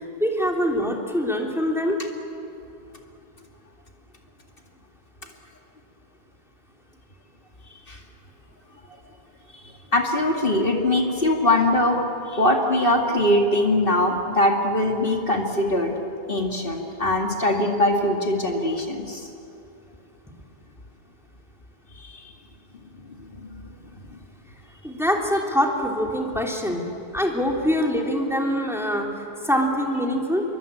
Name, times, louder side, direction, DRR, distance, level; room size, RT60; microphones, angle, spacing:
voice 1, 0.2-2.0 24.8-26.8 27.1-29.1 29.4-30.4, equal, ahead, 0 dB, 3.0 m, -24 dB
voice 2, 9.9-12.0 12.3-15.9 16.3-19.3 21.9-22.3 23.2-23.6 24.1-24.2, left 1 dB, 60° left, 2 dB, 2.5 m, -22 dB
28.5 x 23.0 x 8.5 m, 2.8 s
omnidirectional pair, 1.0 m